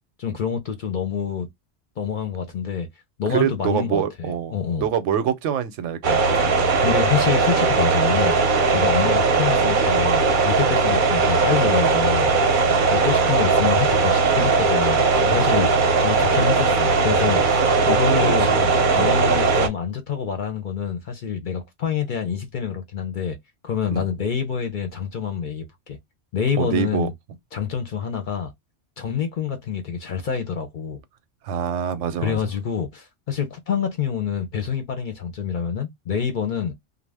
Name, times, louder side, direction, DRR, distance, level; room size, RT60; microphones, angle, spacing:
voice 1, 0.2-1.5 2.0-2.9 3.2-4.9 6.8-8.3 8.7-12.6 12.9-18.5 18.9-23.4 23.6-26.0 26.3-27.1 27.5-28.5 29.0-31.0 32.2-36.7, left 7 dB, 55° left, 0.6 m, -26 dB
voice 2, 3.3-4.5 4.8-6.2 12.7-12.8 15.4-15.5 17.6-17.7 18.0-18.7 19.0-19.1 23.9-24.0 26.6-27.1 31.4-32.4, right 8 dB, 85° right, 0.9 m, -25 dB
sound 1, 6.0-19.7, right 4 dB, 55° right, 0.7 m, -19 dB
2.3 x 2.0 x 3.3 m
omnidirectional pair, 1.2 m